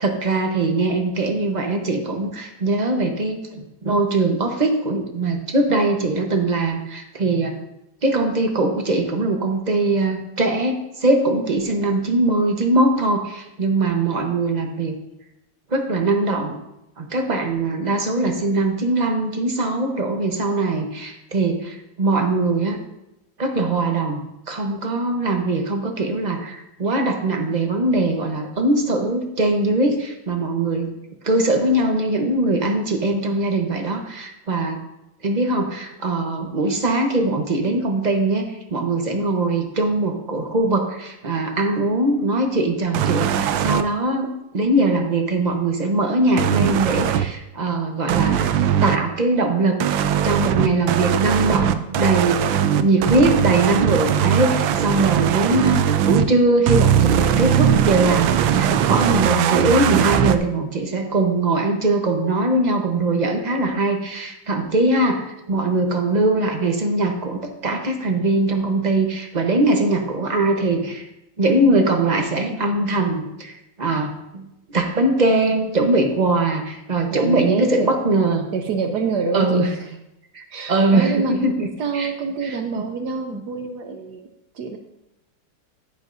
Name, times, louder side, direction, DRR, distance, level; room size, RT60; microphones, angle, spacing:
voice 1, 0.0-7.6 8.0-14.9 15.7-16.6 17.0-22.8 23.4-30.9 31.2-34.8 35.2-48.5 48.8-49.8 50.2-71.1 71.4-78.5 79.3-79.7 80.3-82.1 82.4-82.8 83.3-83.4, right 2 dB, 30° right, 3 dB, 0.8 m, -21 dB
sound 1, 42.9-43.8 46.4-47.3 48.1-49.0 49.8-56.3 56.7-60.4, right 9 dB, 90° right, 1.3 m, -19 dB
voice 2, 77.1-77.9 78.5-79.8 80.5-81.3 81.8-84.3 84.5-84.8, right 5 dB, 65° right, 4 dB, 1.2 m, -26 dB
10.5 x 10.5 x 2.6 m, 0.87 s
omnidirectional pair, 2.0 m